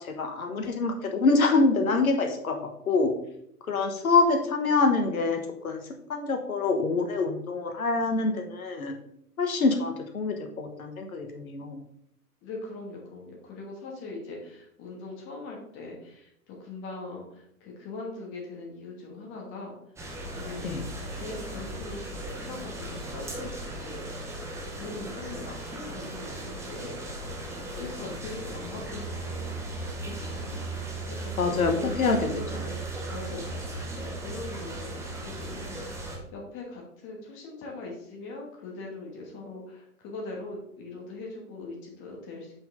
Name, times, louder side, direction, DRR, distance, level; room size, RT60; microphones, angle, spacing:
voice 1, 0.0-2.6 2.9-3.1 3.7-5.8 6.1-8.9 9.4-11.8 20.6-20.8 31.4-32.3, left 3 dB, 65° left, 4 dB, 1.4 m, -25 dB
voice 2, 12.4-19.8 20.3-20.9 21.2-24.4 24.8-27.0 27.7-32.7 33.1-42.5, left 3 dB, 25° left, -1 dB, 2.4 m, -41 dB
sound 1, 20.0-36.2, right 2 dB, 5° right, 1.3 m, -37 dB
8.7 x 5.7 x 3.8 m, 0.72 s
figure-of-eight pair, 110°, 46 cm